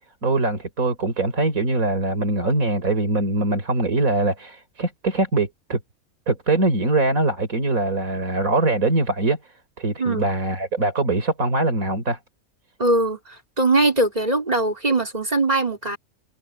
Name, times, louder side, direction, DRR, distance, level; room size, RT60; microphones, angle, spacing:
voice 1, 0.2-5.8 6.3-9.4 9.8-12.2, right 2 dB, 70° right, 4.3 m, -22 dB
voice 2, 10.0-10.3 12.8-16.0, right 2 dB, 25° right, 4.2 m, -21 dB
omnidirectional pair, 1.5 m